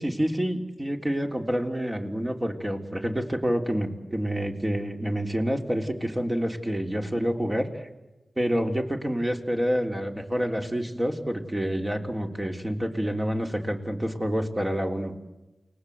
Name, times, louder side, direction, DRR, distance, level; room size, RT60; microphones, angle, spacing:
voice 1, 0.0-7.9 8.4-15.2, equal, 20° right, 2 dB, 3.4 m, -28 dB
29.0 x 20.0 x 8.1 m, 1.1 s
cardioid pair, 50°, 0 cm